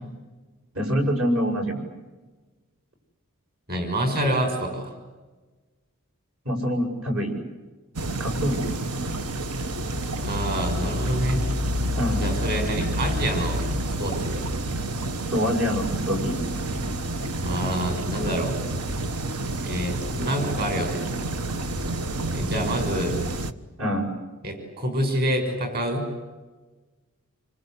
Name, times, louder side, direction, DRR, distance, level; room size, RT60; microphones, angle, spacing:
voice 1, 0.7-1.8 6.5-7.3 8.2-8.8 11.9-12.2 15.3-16.4 16.8-16.9 23.8-24.1, equal, 70° right, 2 dB, 7.3 m, -25 dB
voice 2, 3.7-5.0 10.2-11.4 12.1-14.5 17.4-18.6 19.6-21.0 22.3-23.2 24.4-26.1, right 1 dB, 45° right, 5 dB, 6.1 m, -27 dB
sound 1, 8.0-23.5, right 1 dB, 85° right, 1.3 m, -29 dB
27.5 x 25.5 x 8.3 m, 1.2 s
head